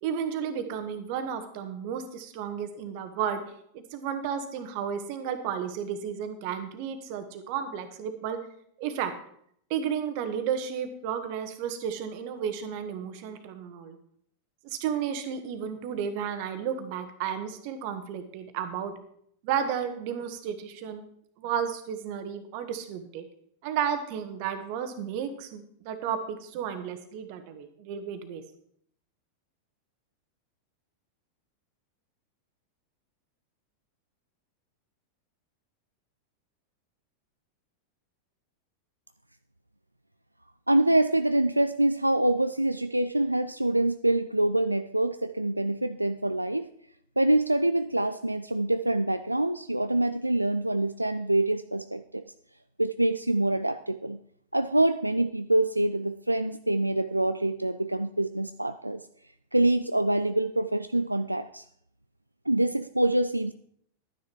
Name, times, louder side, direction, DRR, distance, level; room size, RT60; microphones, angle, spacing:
voice 1, 0.0-3.4 3.7-8.4 8.8-9.1 9.7-14.0 14.6-18.9 19.4-21.0 21.4-23.3 23.6-28.4, right 8 dB, 45° right, 9 dB, 1.5 m, -32 dB
voice 2, 40.7-46.7 47.2-52.2 52.8-54.2 54.5-59.0 59.5-61.6 62.5-63.5, right 1 dB, 85° right, 10 dB, 0.3 m, -25 dB
12.0 x 9.7 x 4.6 m, 0.66 s
figure-of-eight pair, 90°, 0 cm